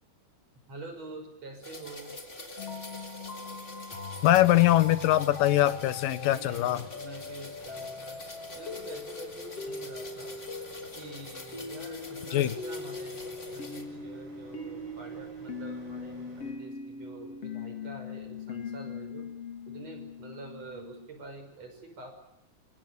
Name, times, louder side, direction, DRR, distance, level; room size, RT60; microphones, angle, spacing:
voice 1, 0.7-2.1 6.3-8.2 8.5-10.3 10.9-19.3 19.7-22.1, right 3 dB, 50° right, 6 dB, 6.6 m, -46 dB
sound 1, 1.6-13.8, left 1 dB, 20° left, 3.5 m, -46 dB
sound 2, 2.6-21.1, left 4 dB, 45° left, 3.4 m, -41 dB
voice 2, 4.2-6.9 12.3-12.6, left 14 dB, 80° left, 14 dB, 2.9 m, -22 dB
sound 3, 4.8-16.5, right 2 dB, 75° right, 8.7 m, -55 dB
26.5 x 25.5 x 6.8 m, 0.81 s
omnidirectional pair, 3.9 m